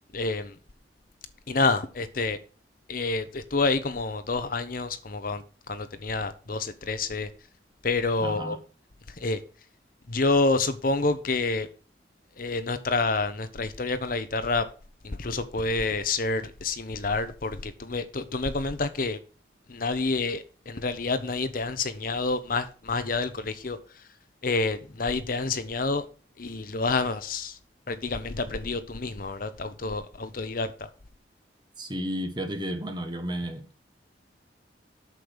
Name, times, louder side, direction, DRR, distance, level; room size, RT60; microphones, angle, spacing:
voice 1, 0.1-0.5 1.5-2.4 2.9-5.4 5.7-7.3 7.8-8.6 9.2-9.4 10.1-11.7 12.4-14.7 15.0-19.2 19.7-23.8 24.4-26.1 26.4-27.6 27.9-30.7, left 3 dB, 50° left, 0.8 m, -28 dB
voice 2, 8.2-8.6 31.8-33.7, equal, 25° right, 1.4 m, -32 dB
8.4 x 6.7 x 6.2 m
head